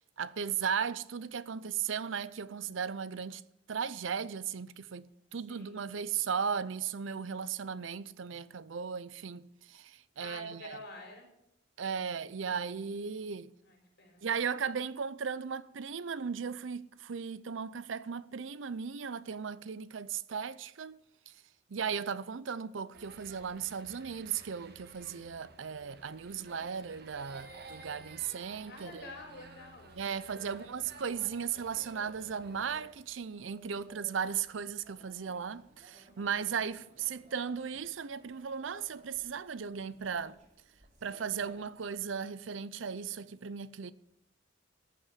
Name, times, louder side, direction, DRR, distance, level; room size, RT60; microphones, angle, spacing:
voice 1, 0.2-3.4 3.7-10.8 11.8-13.5 14.2-21.3 21.7-29.0 29.9-40.4 41.0-43.9, right 7 dB, 75° right, 0.6 m, -36 dB
voice 2, 5.5-5.8 10.2-11.3 13.6-14.2 28.7-30.7, left 3 dB, 55° left, 4.8 m, -49 dB
sound 1, 22.9-32.8, right 3 dB, 60° right, 1.7 m, -53 dB
sound 2, 30.1-42.0, right 1 dB, 40° right, 2.9 m, -60 dB
13.5 x 6.1 x 9.4 m
head